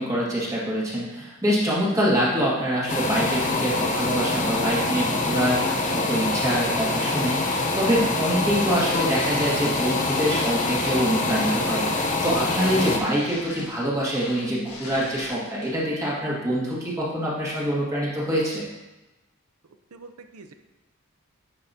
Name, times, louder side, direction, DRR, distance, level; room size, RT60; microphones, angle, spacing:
voice 1, 0.0-18.6, equal, 15° right, -6 dB, 1.7 m, -25 dB
sound 1, 2.9-13.0, left 2 dB, 35° left, 0.8 m, -25 dB
sound 2, 5.7-15.9, left 2 dB, 90° left, 1.5 m, -41 dB
voice 2, 19.9-20.5, right 3 dB, 85° right, 7 dB, 0.6 m, -44 dB
9.6 x 5.7 x 2.8 m, 1.1 s
head